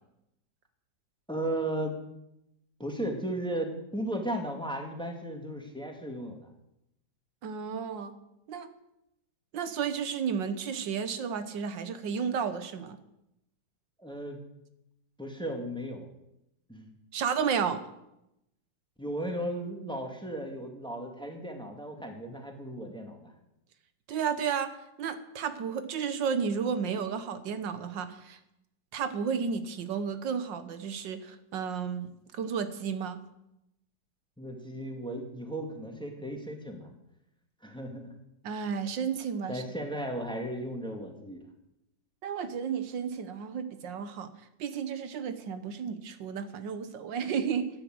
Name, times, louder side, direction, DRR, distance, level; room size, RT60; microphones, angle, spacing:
voice 1, 1.3-2.0 2.8-6.5 14.0-14.4 15.2-16.1 16.7-16.9 19.0-23.3 34.4-36.9 37.6-38.1 39.5-41.4, right 1 dB, 5° left, 2 dB, 2.1 m, -35 dB
voice 2, 7.4-8.1 8.5-8.7 9.5-13.0 17.1-17.8 24.1-24.7 25.0-28.4 28.9-33.2 38.4-39.6 42.2-44.3 44.6-47.7, right 6 dB, 85° right, 10 dB, 1.7 m, -32 dB
13.0 x 10.0 x 7.8 m, 0.85 s
omnidirectional pair, 1.9 m